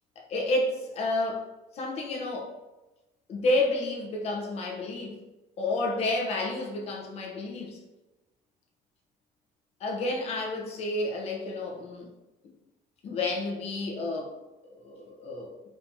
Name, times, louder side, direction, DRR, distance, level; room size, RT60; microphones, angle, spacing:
voice 1, 0.2-1.5 1.7-2.5 3.3-5.2 5.6-7.8 9.8-12.1 13.0-14.4 14.7-15.5, left 2 dB, 45° left, 0 dB, 0.9 m, -30 dB
4.3 x 2.8 x 3.5 m, 1.1 s
cardioid pair, 160°, 15 cm